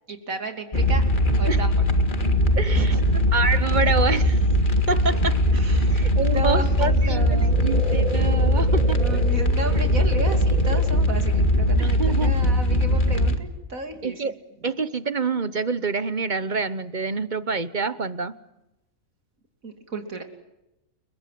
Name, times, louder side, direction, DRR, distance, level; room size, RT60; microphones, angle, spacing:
voice 1, 0.1-1.1 1.4-1.7 2.7-3.2 5.5-6.0 6.3-7.7 8.9-14.3 19.6-20.2, right 2 dB, 75° right, 6 dB, 3.4 m, -33 dB
sound 1, 0.7-13.4, left 1 dB, 35° left, 2.1 m, -20 dB
voice 2, 2.5-2.9 3.3-4.4 4.9-5.3 5.9-9.0 11.8-12.3 14.0-14.3 14.6-18.3, right 4 dB, 35° right, 15 dB, 1.1 m, -26 dB
sound 2, 7.1-10.9, right 5 dB, 90° right, 4.1 m, -34 dB
30.0 x 22.0 x 7.7 m, 0.91 s
omnidirectional pair, 1.5 m